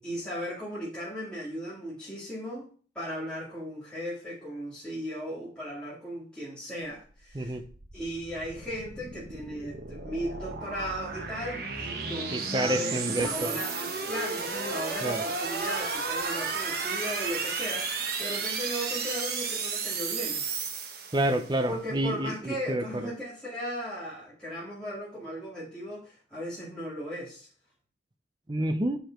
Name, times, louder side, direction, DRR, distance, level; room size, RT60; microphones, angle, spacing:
voice 1, 0.0-2.7 2.9-7.6 7.9-20.4 21.7-27.5, equal, 5° left, -9 dB, 2.1 m, -37 dB
sound 1, 7.0-21.6, right 4 dB, 55° right, 1.1 m, -33 dB
voice 2, 12.3-13.6 15.0-15.2 21.1-23.0 28.5-29.0, right 1 dB, 25° right, 7 dB, 0.7 m, -29 dB
7.0 x 5.0 x 4.5 m, 0.41 s
head